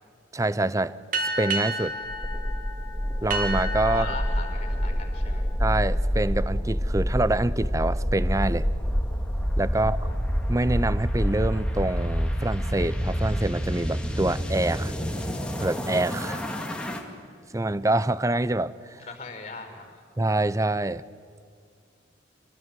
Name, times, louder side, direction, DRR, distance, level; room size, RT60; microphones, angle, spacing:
voice 1, 0.3-1.0 1.4-1.9 3.2-4.1 5.6-8.7 9.6-10.1 10.5-14.9 15.6-16.4 17.5-19.0 20.2-21.0, right 2 dB, 15° right, 17 dB, 0.5 m, -26 dB
sound 1, 1.1-6.2, right 1 dB, 45° right, 2.2 m, -33 dB
sound 2, 2.1-17.0, equal, 5° left, 2.2 m, -27 dB
voice 2, 3.9-5.5 9.9-10.2 16.3-16.6 19.0-20.0, left 3 dB, 35° left, 4 dB, 5.3 m, -40 dB
26.0 x 19.0 x 9.2 m, 2.2 s
head